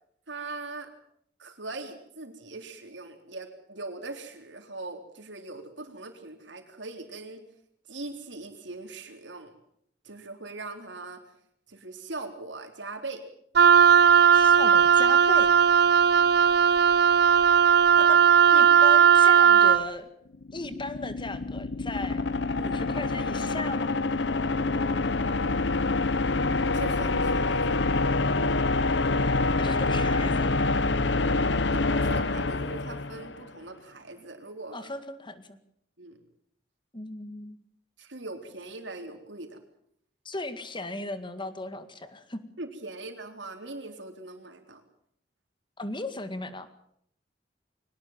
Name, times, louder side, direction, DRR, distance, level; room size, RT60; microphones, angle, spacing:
voice 1, 0.3-0.9 1.4-7.4 7.9-9.5 10.0-11.2 11.7-13.2 16.1-16.3 26.7-27.8 31.7-34.9 36.0-36.2 38.0-39.6 42.6-44.8, right 2 dB, 80° right, 5 dB, 3.8 m, -41 dB
Wind instrument woodwind instrument, 13.6-19.8, right 7 dB, 65° right, 0.8 m, -17 dB
voice 2, 14.3-15.5 18.0-20.1 20.5-22.2 22.6-24.0 29.6-30.5 34.7-35.6 36.9-37.6 40.3-42.4 45.8-46.7, left 2 dB, 25° left, 11 dB, 2.0 m, -37 dB
sound 1, 20.3-33.5, left 3 dB, 70° left, 0.9 m, -26 dB
23.0 x 19.0 x 7.4 m, 0.69 s
head